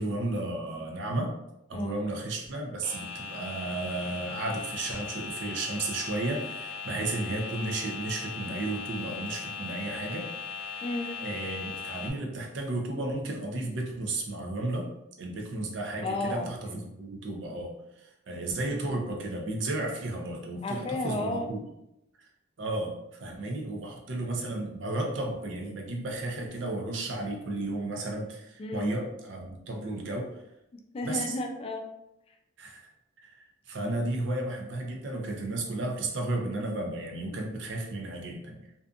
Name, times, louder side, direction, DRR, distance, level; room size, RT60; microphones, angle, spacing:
voice 1, 0.0-1.3 1.7-10.9 11.2-14.9 15.2-21.6 22.2-22.3 22.6-22.9 23.2-30.3 31.0-31.3 32.6-32.9 33.2-38.6, right 2 dB, 75° right, 1 dB, 0.6 m, -33 dB
sound 1, 2.8-12.1, left 5 dB, 65° left, 0.7 m, -39 dB
voice 2, 10.8-11.2 16.0-16.8 20.6-21.5 28.6-28.9 30.7-31.9, left 2 dB, 30° left, 3 dB, 0.3 m, -33 dB
2.6 x 2.4 x 2.4 m, 0.87 s
head